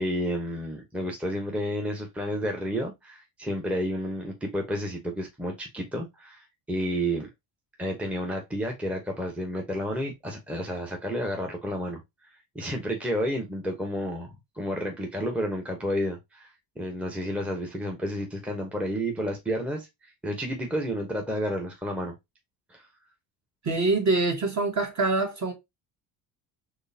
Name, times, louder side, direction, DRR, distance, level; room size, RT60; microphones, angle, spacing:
voice 1, 0.0-7.3 7.8-12.0 12.5-14.3 14.6-16.5 16.8-22.1 22.7-22.9, equal, 5° right, 0.9 m, -31 dB
voice 2, 23.6-25.5, right 3 dB, 35° right, 1.6 m, -25 dB
3.8 x 3.2 x 2.8 m
supercardioid pair, 85°, 49 cm